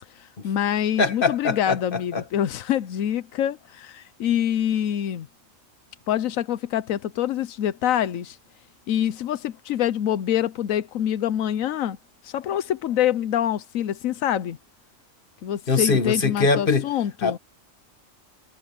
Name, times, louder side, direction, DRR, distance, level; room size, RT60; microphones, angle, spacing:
voice 1, 0.2-5.3 6.1-8.4 8.9-12.0 12.2-14.6 15.4-17.4, left 10 dB, 90° left, 1.1 m, -25 dB
voice 2, 1.0-2.2 15.7-16.9 17.2-17.4, left 4 dB, 45° left, 1.8 m, -23 dB
omnidirectional pair, 1.4 m